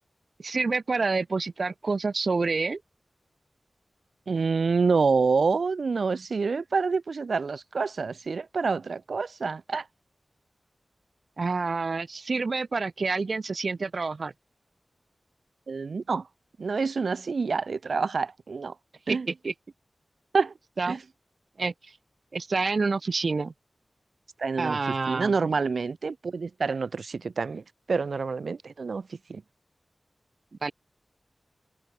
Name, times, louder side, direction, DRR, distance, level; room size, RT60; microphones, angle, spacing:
voice 1, 0.4-2.8 11.4-14.3 19.1-19.2 19.4-19.5 20.8-21.0 21.6-21.7 22.3-23.5 24.6-25.3 30.6-30.7, right 4 dB, 65° right, 5.1 m, -28 dB
voice 2, 4.3-9.9 15.7-16.3 16.6-18.7 19.1-19.3 20.3-20.5 20.9-21.0 24.4-29.4, right 4 dB, 85° right, 1.8 m, -27 dB
wide cardioid pair, 90°, 0 cm